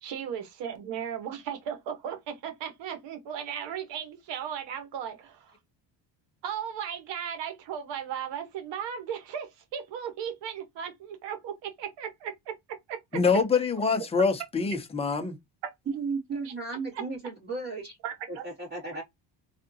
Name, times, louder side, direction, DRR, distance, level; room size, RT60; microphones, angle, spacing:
voice 1, 0.0-5.6 6.4-13.2 16.4-16.5 16.9-17.0 18.0-18.5, right 8 dB, 65° right, 1.2 m, -36 dB
voice 2, 13.1-15.4, left 5 dB, 15° left, 0.6 m, -25 dB
voice 3, 15.9-18.0 18.3-19.0, right 4 dB, 20° right, 2.2 m, -34 dB
3.5 x 2.5 x 2.7 m
cardioid pair, 130°, 45 cm